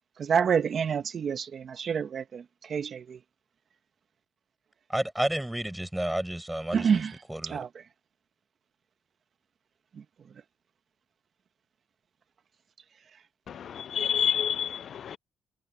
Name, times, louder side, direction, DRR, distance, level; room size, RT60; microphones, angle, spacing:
voice 1, 0.2-3.2 6.7-7.8, right 7 dB, 55° right, 1.0 m, -28 dB
voice 2, 4.9-7.0 7.3-7.6, right 1 dB, 5° right, 6.0 m, -31 dB
voice 3, 13.5-15.2, left 8 dB, 60° left, 0.4 m, -29 dB
cardioid pair, 90°, 0 cm